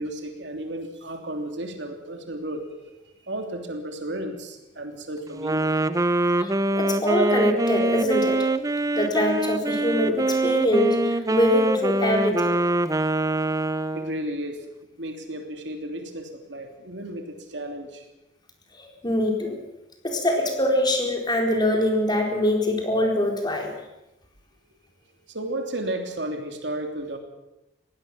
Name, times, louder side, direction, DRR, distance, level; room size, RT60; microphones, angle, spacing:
voice 1, 0.0-2.9 3.2-5.7 12.8-12.9 13.9-14.6 15.0-18.1 25.0-27.2, right 1 dB, 70° right, 5 dB, 3.1 m, -33 dB
Wind instrument woodwind instrument, 5.3-14.3, right 2 dB, 20° right, 0.7 m, -24 dB
voice 2, 6.4-8.5 8.9-12.5 18.7-19.6 20.0-23.7, left 1 dB, 25° left, 2 dB, 4.2 m, -24 dB
21.0 x 17.0 x 7.4 m, 0.93 s
head